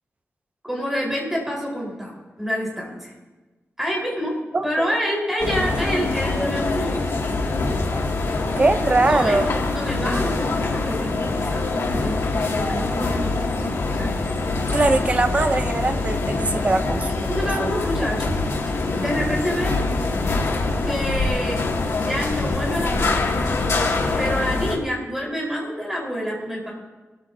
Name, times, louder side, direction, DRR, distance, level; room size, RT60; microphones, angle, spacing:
voice 1, 0.6-3.1 3.8-4.4 4.6-7.1 8.9-13.5 13.9-14.1 17.3-18.3 19.0-19.9 20.8-21.6 22.0-23.3 24.2-26.7, equal, 10° right, -4 dB, 4.3 m, -27 dB
voice 2, 4.5-5.0 8.6-9.5 14.7-17.3 17.6-17.7, right 2 dB, 30° right, 9 dB, 0.7 m, -21 dB
sound 1, 5.4-24.8, left 3 dB, 90° left, 2.3 m, -24 dB
22.5 x 14.0 x 2.7 m, 1.2 s
wide cardioid pair, 170°, 5 cm